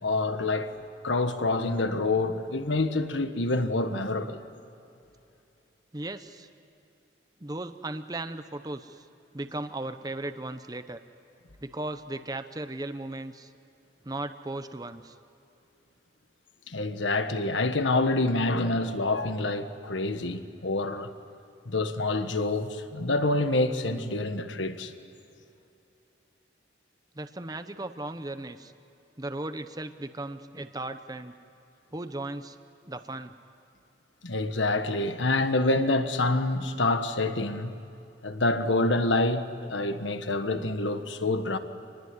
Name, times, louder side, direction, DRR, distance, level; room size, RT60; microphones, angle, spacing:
voice 1, 0.0-0.7 1.0-4.4 16.7-21.1 21.6-24.9 34.2-37.7 38.2-41.6, left 2 dB, 90° left, 1.5 m, -27 dB
voice 2, 5.9-6.5 7.4-9.1 9.3-11.0 11.6-13.5 14.0-15.2 27.1-28.7 29.2-31.4 31.9-32.6 32.9-33.3, right 2 dB, 20° right, 0.8 m, -36 dB
27.5 x 20.5 x 9.8 m
head